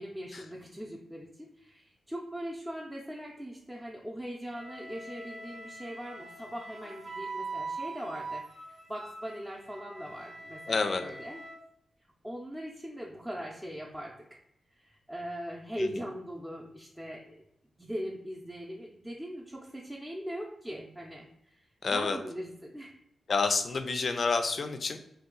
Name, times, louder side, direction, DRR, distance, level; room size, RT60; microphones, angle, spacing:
voice 1, 0.0-11.4 12.2-14.4 14.7-17.3 17.8-21.6 21.9-22.9, equal, 10° right, -3 dB, 0.6 m, -40 dB
Wind instrument woodwind instrument, 4.5-11.6, right 3 dB, 70° right, 0.9 m, -43 dB
voice 2, 10.7-11.0 15.8-15.9 21.8-22.2 23.3-25.0, left 4 dB, 60° left, 7 dB, 0.4 m, -28 dB
2.7 x 2.3 x 3.8 m, 0.77 s
supercardioid pair, 40°, 0 cm